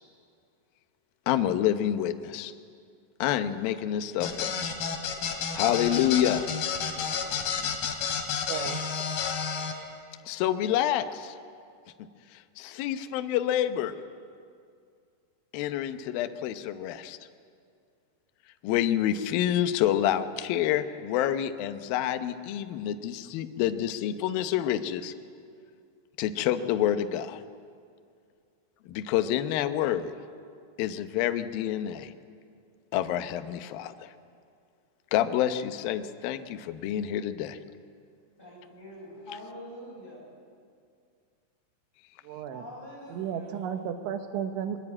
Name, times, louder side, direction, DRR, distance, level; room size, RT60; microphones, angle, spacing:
voice 1, 1.3-2.5 3.2-4.6 5.5-6.5 10.3-11.4 12.3-13.9 15.5-17.2 18.6-25.1 26.2-27.4 28.9-30.1 30.8-32.1 32.9-34.1 35.1-37.6, left 11 dB, 85° left, 8 dB, 2.1 m, -28 dB
sound 1, 4.2-9.7, left 6 dB, 60° left, 3.8 m, -31 dB
voice 2, 8.5-8.8 42.2-42.7 43.1-44.8, right 8 dB, 75° right, 7 dB, 3.6 m, -33 dB
voice 3, 38.4-40.3 42.5-43.6, equal, 10° left, -3 dB, 7.6 m, -45 dB
22.5 x 22.0 x 8.8 m, 2.3 s
omnidirectional pair, 5.5 m